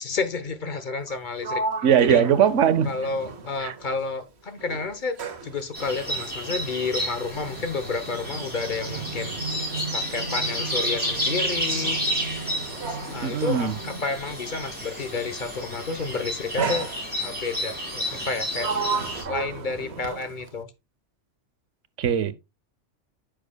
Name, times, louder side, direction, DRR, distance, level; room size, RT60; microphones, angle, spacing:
voice 1, 0.0-1.6 2.0-2.2 2.8-9.3 9.9-12.0 12.9-16.9 17.2-18.7 19.3-20.7, left 4 dB, 45° left, 1.0 m, -30 dB
Sliding door, 1.0-4.3 4.6-14.7 15.6-15.9 16.6-17.5 18.1-20.6, right 4 dB, 65° right, 1.3 m, -34 dB
voice 2, 1.8-2.9 3.6-3.7 13.2-13.8 22.0-22.3, right 8 dB, 85° right, 1.1 m, -20 dB
sound 1, 5.7-19.2, equal, 10° right, 4.7 m, -31 dB
9.9 x 6.3 x 2.2 m
omnidirectional pair, 1.2 m